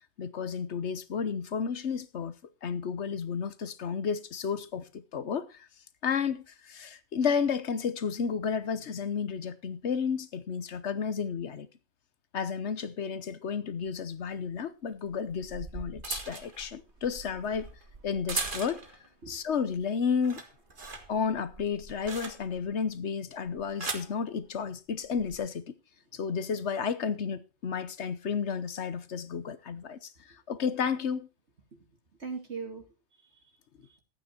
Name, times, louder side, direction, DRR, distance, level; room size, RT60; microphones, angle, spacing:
voice 1, 0.2-2.3 2.6-5.7 6.0-11.7 12.3-17.7 18.0-18.8 19.3-20.4 21.1-25.6 26.1-31.3, left 6 dB, 60° left, 1.2 m, -32 dB
sound 1, 13.8-13.9 15.1-19.1 19.5-19.8 20.1-22.7 23.5-24.1 25.0-25.4, right 3 dB, 40° right, 1.8 m, -39 dB
voice 2, 32.2-34.0, right 5 dB, 55° right, 2.6 m, -43 dB
13.5 x 9.0 x 4.4 m
omnidirectional pair, 1.4 m